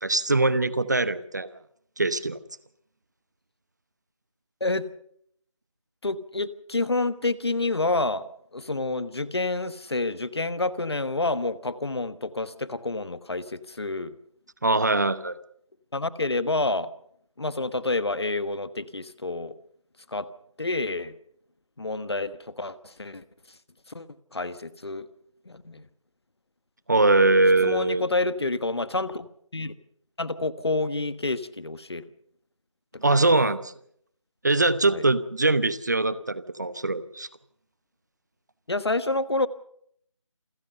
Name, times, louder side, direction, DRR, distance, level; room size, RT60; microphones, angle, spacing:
voice 1, 0.0-1.5 2.0-2.4 14.6-15.3 26.9-28.0 33.0-33.7 34.4-37.3, right 2 dB, 35° right, 16 dB, 0.9 m, -22 dB
voice 2, 6.0-8.2 8.5-14.2 15.9-16.9 17.4-19.5 20.1-20.3 20.6-21.1 21.8-23.2 23.9-25.1 25.4-25.8 27.6-29.7 30.2-32.0 33.0-33.2 34.9-35.0 38.7-39.5, left 2 dB, 50° left, 15 dB, 1.3 m, -28 dB
28.0 x 15.0 x 6.8 m, 0.69 s
figure-of-eight pair, 165°, 17 cm